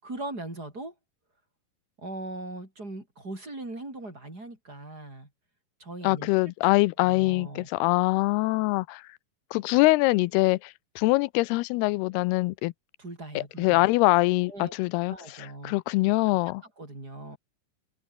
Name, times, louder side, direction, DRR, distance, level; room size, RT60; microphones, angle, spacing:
voice 1, 0.0-0.9 2.0-5.3 5.8-6.3 6.6-7.7 13.0-13.9 14.5-14.7 15.1-15.8 16.5-17.4, right 2 dB, 25° right, 6.5 m, -40 dB
voice 2, 6.0-9.0 9.5-12.7 13.4-15.2 15.6-16.6, left 21 dB, 85° left, 2.6 m, -24 dB
omnidirectional pair, 4.5 m